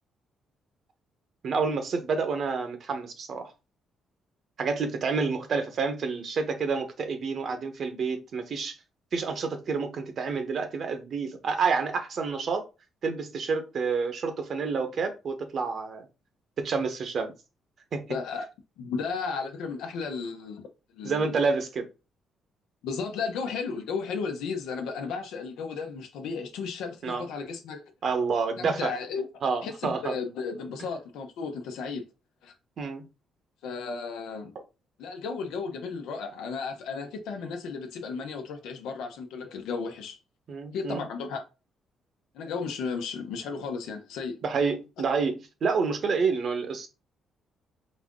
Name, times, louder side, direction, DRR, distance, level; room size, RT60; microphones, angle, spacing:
voice 1, 1.4-3.5 4.6-8.7 9.1-12.6 13.0-16.1 16.6-17.3 17.9-18.1 21.0-21.9 27.0-27.2 28.0-28.9 29.4-30.2 32.8-33.0 40.5-41.0 44.4-46.9, right 5 dB, 55° right, 1.0 m, -28 dB
voice 2, 18.1-18.5 18.8-20.7 20.9-21.4 22.8-27.8 28.6-29.3 29.6-32.0 32.4-32.5 33.6-34.5 35.0-40.2 40.7-41.4 42.3-44.4, left 5 dB, 90° left, 0.9 m, -34 dB
4.2 x 2.6 x 3.6 m
cardioid pair, 90°, 0 cm